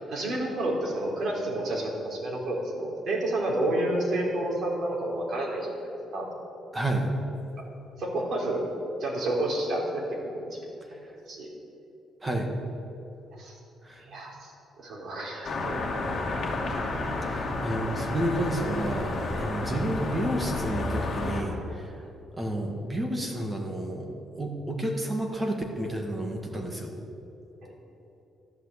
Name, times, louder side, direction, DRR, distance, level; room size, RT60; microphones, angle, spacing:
voice 1, 0.0-5.8 6.1-6.3 8.0-8.6 9.0-10.6 10.9-11.0 11.3-11.5 13.4-13.6 14.0-14.5 14.8-16.1 19.3-19.5 27.6-27.7, right 1 dB, 50° right, -2 dB, 4.0 m, -30 dB
voice 2, 6.7-7.1 12.2-12.5 13.8-14.0 17.2-21.9 22.4-24.1 24.4-27.0, right 1 dB, 15° right, 2 dB, 1.9 m, -30 dB
sound 1, 15.4-21.4, left 2 dB, 40° left, 2.6 m, -31 dB
13.5 x 11.5 x 8.2 m, 2.9 s
cardioid pair, 155°, 0 cm